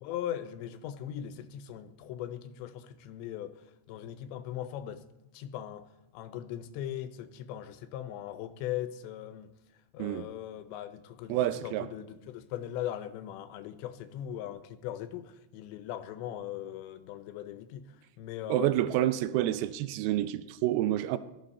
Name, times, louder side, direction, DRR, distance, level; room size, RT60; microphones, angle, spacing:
voice 1, 0.0-3.5 3.9-5.0 5.3-5.9 6.1-9.5 9.9-19.1, left 11 dB, 80° left, 3.0 m, -39 dB
voice 2, 11.3-11.9 18.5-21.2, right 13 dB, 90° right, 2.1 m, -28 dB
20.0 x 14.0 x 4.2 m
omnidirectional pair, 5.2 m